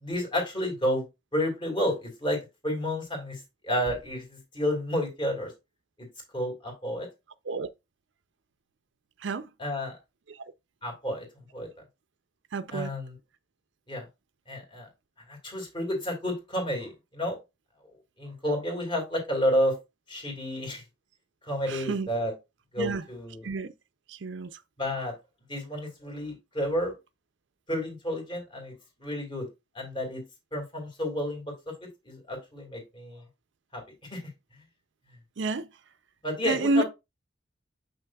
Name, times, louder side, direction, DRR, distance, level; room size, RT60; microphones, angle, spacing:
voice 1, 0.0-1.1 1.3-5.5 6.3-7.1 9.6-10.0 10.8-11.3 11.5-11.7 12.7-13.2 13.9-14.0 14.5-14.9 15.3-17.4 18.2-19.8 20.1-20.8 21.5-22.3 22.7-23.5 24.8-25.1 25.5-26.9 27.7-28.7 29.0-29.5 29.7-30.2 30.5-31.7 32.0-33.2 33.7-33.8 34.1-34.2 36.2-36.8, equal, 25° left, 2.3 m, -30 dB
voice 2, 12.5-12.9 21.7-22.1 22.8-23.0 23.4-23.7 24.1-24.6 35.4-35.7 36.5-36.8, right 3 dB, 65° right, 0.5 m, -29 dB
7.2 x 5.8 x 2.3 m
head